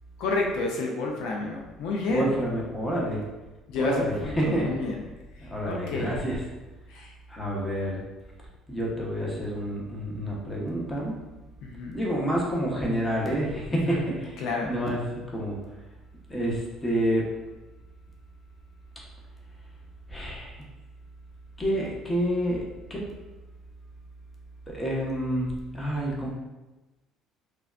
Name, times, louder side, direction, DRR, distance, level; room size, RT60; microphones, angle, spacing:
voice 1, 0.2-2.3 3.7-5.0 5.3-6.2 6.9-7.1 11.6-12.0 13.7-14.1 14.4-14.7, left 3 dB, 75° left, 0 dB, 0.4 m, -30 dB
voice 2, 2.1-3.2 3.7-4.6 5.4-6.4 7.3-8.0 8.7-11.2 11.9-14.3 14.6-15.0 15.3-15.6 16.3-17.3 20.1-20.7 21.6-23.1 24.7-26.3, equal, 20° left, -3 dB, 0.8 m, -28 dB
3.3 x 2.2 x 2.4 m, 1.1 s
supercardioid pair, 85°, 0 cm